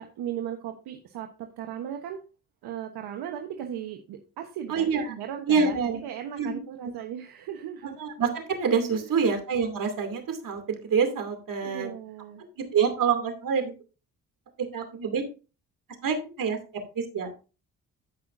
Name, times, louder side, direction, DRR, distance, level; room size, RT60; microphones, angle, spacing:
voice 1, 0.0-2.2 2.6-8.0 9.0-9.4 11.6-12.4, right 10 dB, 80° right, 4 dB, 1.1 m, -37 dB
voice 2, 4.7-5.0 5.5-6.0 6.4-6.5 6.8-6.9 8.0-11.9 12.6-13.7 14.6-15.2 16.0-16.6 16.9-17.3, right 6 dB, 60° right, 6 dB, 2.7 m, -26 dB
15.0 x 5.8 x 2.6 m, 0.33 s
supercardioid pair, 65°, 38 cm